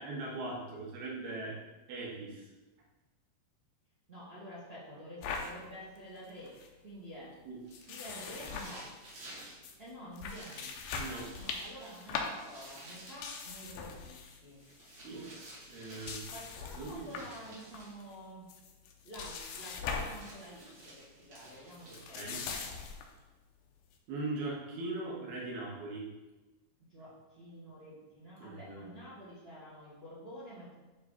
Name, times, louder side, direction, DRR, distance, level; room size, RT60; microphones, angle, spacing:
voice 1, 0.0-1.6 1.9-2.5 7.5-7.6 11.0-11.3 14.9-15.2 15.7-16.2 16.8-16.9 21.9-22.4 24.1-26.1 28.4-28.9, right 2 dB, 80° right, -3 dB, 3.4 m, -40 dB
voice 2, 4.1-6.5 6.8-7.4 7.9-8.9 9.8-10.7 11.4-14.2 14.4-14.6 15.0-15.3 15.9-18.5 19.0-22.6 26.9-30.7, equal, 25° right, -8 dB, 1.5 m, -49 dB
sound 1, 5.2-5.5 6.0-6.1 6.3-6.7 7.7-9.3 9.6-9.7 10.1-14.4 14.7-15.0 15.7-17.3 17.7-18.1 18.5-20.3 20.5-20.8 21.7-23.1, left 5 dB, 75° left, 2.6 m, -41 dB
sound 2, 7.7-9.6 10.3-13.3 14.5-16.3 17.0-18.0 19.6-22.4, right 1 dB, 45° right, 3.5 m, -53 dB
10.5 x 3.8 x 4.1 m, 1.2 s
omnidirectional pair, 4.5 m